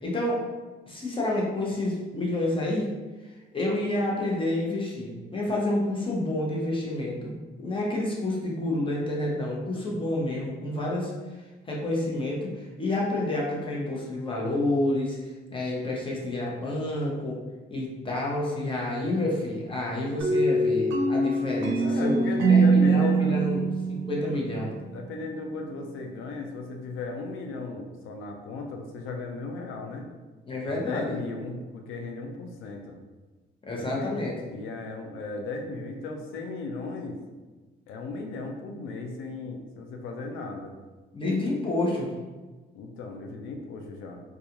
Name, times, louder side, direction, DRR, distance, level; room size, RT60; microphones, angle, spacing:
voice 1, 0.0-0.4 0.9-2.9 3.5-11.1 11.7-15.2 15.5-17.4 17.7-23.6 23.9-24.8 30.5-31.1 33.7-34.3 41.1-42.1, left 1 dB, 25° left, -3 dB, 0.7 m, -29 dB
sound 1, 20.2-24.9, right 3 dB, 75° right, 0.5 m, -23 dB
voice 2, 21.8-23.4 24.9-30.1 30.7-33.0 33.8-34.1 34.4-37.2 37.9-40.7 42.7-44.2, left 3 dB, 85° left, 3 dB, 0.5 m, -36 dB
2.3 x 2.3 x 2.9 m, 1.3 s
cardioid pair, 90°, 20 cm